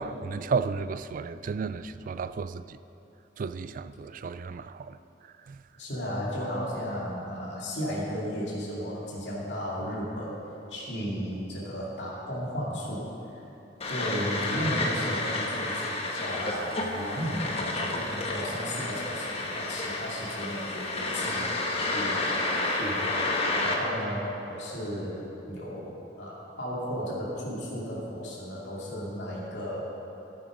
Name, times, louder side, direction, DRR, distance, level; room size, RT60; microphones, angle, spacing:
voice 1, 0.0-2.8 3.4-5.0 5.2-5.6, right 5 dB, 50° right, 13 dB, 0.3 m, -33 dB
voice 2, 5.8-10.4 10.7-13.4 13.8-22.4 22.7-29.8, equal, 70° left, -6 dB, 2.6 m, -34 dB
sound 1, 13.8-23.7, left 2 dB, 35° left, 1.3 m, -30 dB
13.0 x 8.5 x 5.1 m, 3.0 s
head